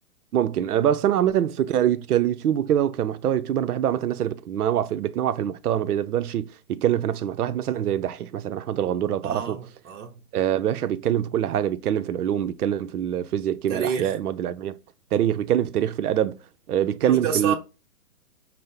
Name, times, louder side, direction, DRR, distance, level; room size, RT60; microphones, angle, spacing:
voice 1, 0.3-9.6 10.3-14.7 15.1-16.4 16.7-17.5, right 10 dB, 80° right, 0.6 m, -24 dB
voice 2, 9.2-10.1 13.7-14.1 17.1-17.6, right 7 dB, 55° right, 0.9 m, -28 dB
5.1 x 2.0 x 4.2 m
hypercardioid pair, 155°, 44 cm